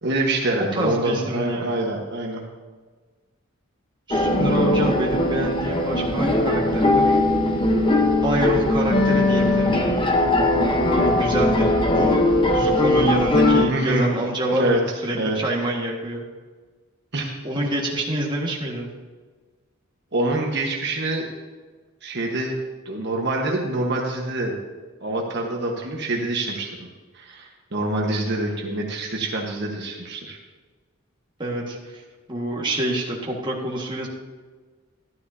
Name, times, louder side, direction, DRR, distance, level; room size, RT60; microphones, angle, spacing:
voice 1, 0.0-2.4 13.7-14.1 14.5-14.8 15.1-15.4 17.1-17.4 20.1-21.3 22.0-22.5 22.8-24.6 25.0-26.9 27.1-30.4, right 2 dB, 55° right, 0 dB, 1.3 m, -25 dB
voice 2, 0.7-1.8 4.1-7.2 8.2-10.1 11.0-12.2 12.5-16.2 17.4-18.9 31.4-32.0 32.3-34.1, right 1 dB, 25° right, -2 dB, 1.7 m, -27 dB
sound 1, 4.1-13.6, left 1 dB, 25° left, 1.0 m, -19 dB
12.5 x 12.0 x 2.8 m, 1.4 s
head